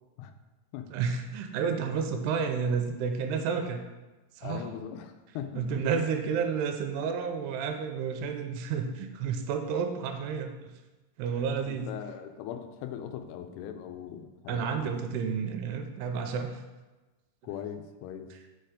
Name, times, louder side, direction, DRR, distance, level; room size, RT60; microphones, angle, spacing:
voice 1, 0.9-3.8 4.4-4.7 5.6-10.7 11.2-11.9 14.5-16.6, right 6 dB, 90° right, 6 dB, 2.7 m, -31 dB
voice 2, 4.4-5.9 11.3-15.0 17.4-18.3, left 9 dB, 85° left, 7 dB, 2.6 m, -40 dB
5.9 x 4.5 x 4.9 m, 1.1 s
omnidirectional pair, 4.7 m